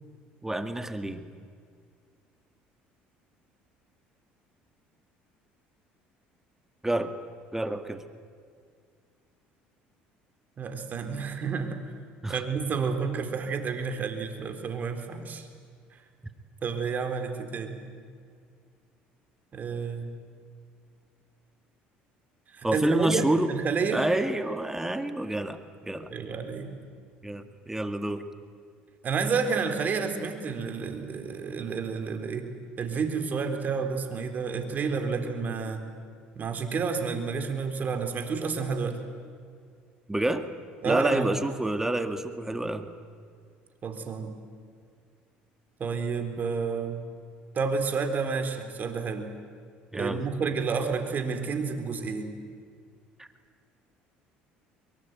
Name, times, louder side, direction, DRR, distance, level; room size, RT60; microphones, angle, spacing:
voice 1, 0.4-1.3 6.8-7.1 7.5-8.0 12.2-12.4 22.6-23.5 23.9-25.6 25.9-26.1 27.2-28.2 40.1-40.5 40.8-42.9 49.9-50.2 53.2-53.3, right 1 dB, 10° right, 9 dB, 1.8 m, -28 dB
voice 2, 10.6-11.8 12.3-15.5 16.6-17.8 19.5-20.1 22.5-24.0 26.1-26.7 29.0-32.5 32.8-35.8 36.4-39.0 40.8-41.4 43.8-44.4 45.8-47.1 47.5-49.3 49.9-52.3, right 5 dB, 45° right, 7 dB, 3.9 m, -30 dB
23.5 x 23.0 x 9.3 m, 2.2 s
supercardioid pair, 80°, 4 cm